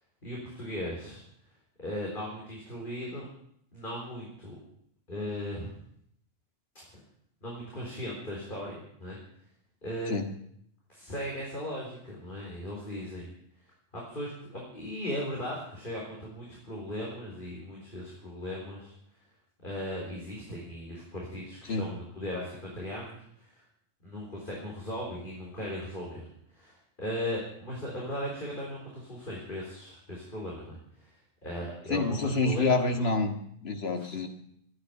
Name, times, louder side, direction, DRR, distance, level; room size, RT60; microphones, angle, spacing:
voice 1, 0.2-1.2 1.8-3.2 3.7-4.6 5.1-5.7 6.7-6.8 7.4-9.2 9.8-10.1 10.9-13.3 13.9-18.9 19.6-23.6 24.0-26.3 26.5-33.1 34.0-34.1, equal, 50° left, -4 dB, 4.3 m, -37 dB
voice 2, 31.9-33.4 33.6-34.3, left 3 dB, 65° left, 5 dB, 1.9 m, -27 dB
13.0 x 10.0 x 9.4 m, 0.68 s
omnidirectional pair, 1.1 m